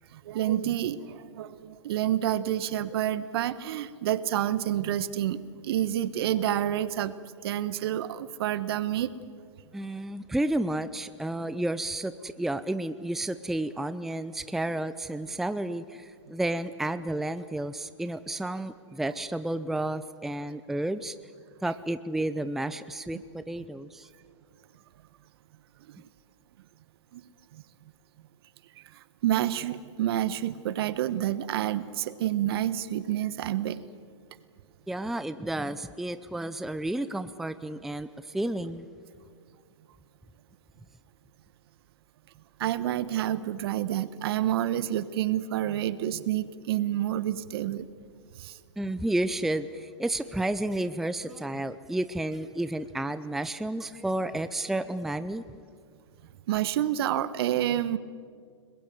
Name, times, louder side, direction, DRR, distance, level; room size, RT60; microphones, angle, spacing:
voice 1, 0.1-7.1 7.4-9.2 25.9-26.0 27.1-27.2 27.5-27.6 28.9-33.8 42.6-47.9 48.4-48.6 56.5-58.0, right 12 dB, 55° right, 15 dB, 1.3 m, -28 dB
voice 2, 9.7-21.2 21.6-24.1 34.9-38.9 48.8-55.4, right 1 dB, ahead, 13 dB, 0.6 m, -31 dB
30.0 x 21.5 x 7.7 m, 2.1 s
hypercardioid pair, 120°, 16 cm